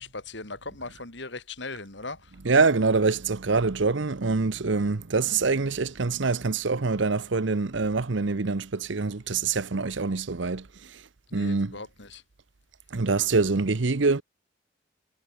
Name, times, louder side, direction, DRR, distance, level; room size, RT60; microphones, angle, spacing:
voice 1, 0.0-2.3 11.3-12.2, left 3 dB, 60° left, 3.8 m, -39 dB
voice 2, 2.4-11.0 11.3-11.8 12.9-14.2, right 4 dB, 65° right, 0.8 m, -25 dB
head